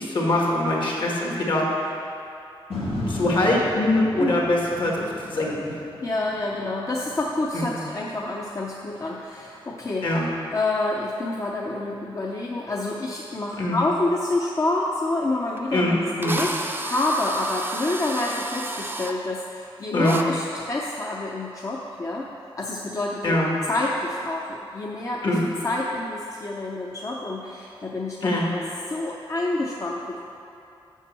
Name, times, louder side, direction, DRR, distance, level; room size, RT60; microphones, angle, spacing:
voice 1, 0.0-1.9 3.1-5.6 7.5-7.7 10.0-10.3 13.6-13.8 15.7-16.4 19.9-20.2 23.2-23.5 25.2-25.5 28.2-28.5, left 1 dB, 55° left, -3 dB, 1.7 m, -23 dB
sound 1, 2.7-10.9 11.3-11.4, left 1 dB, 85° left, 1.8 m, -37 dB
voice 2, 6.0-10.2 10.5-22.3 22.6-23.4 23.7-25.4 25.6-28.6 28.9-30.2, left 2 dB, 35° left, -3 dB, 0.6 m, -28 dB
Drill, 15.6-15.7 16.2-19.1 20.0-20.2, right 2 dB, 20° right, 0.5 m, -31 dB
7.3 x 6.0 x 6.8 m, 2.7 s
wide cardioid pair, 130°, 10 cm